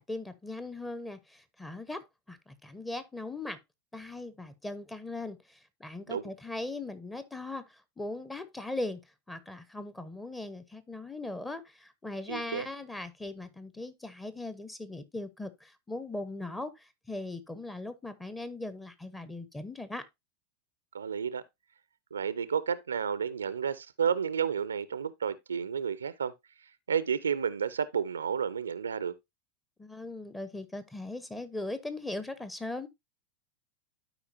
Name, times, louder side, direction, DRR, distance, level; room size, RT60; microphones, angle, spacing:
voice 1, 0.0-3.6 3.9-9.0 9.3-20.1 29.8-32.9, left 2 dB, 10° left, 0.9 m, -39 dB
voice 2, 12.3-12.7 20.9-21.4 22.1-26.3 26.9-29.1, right 7 dB, 75° right, 0.5 m, -31 dB
12.0 x 4.8 x 2.6 m
figure-of-eight pair, 85°, 0 cm